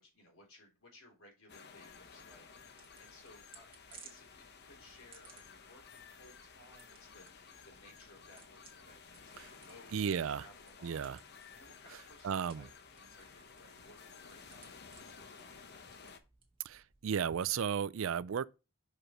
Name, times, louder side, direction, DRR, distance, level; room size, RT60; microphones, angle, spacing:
voice 1, 0.0-9.9 10.3-11.2 11.5-16.2, left 1 dB, 70° left, 3.6 m, -61 dB
sound 1, 1.5-16.2, left 5 dB, 50° left, 0.8 m, -55 dB
sound 2, 1.9-17.1, right 5 dB, 25° right, 1.5 m, -63 dB
voice 2, 9.9-10.4 10.8-11.2 12.2-12.7 16.6-18.5, right 7 dB, 65° right, 0.4 m, -34 dB
6.5 x 4.9 x 4.3 m
head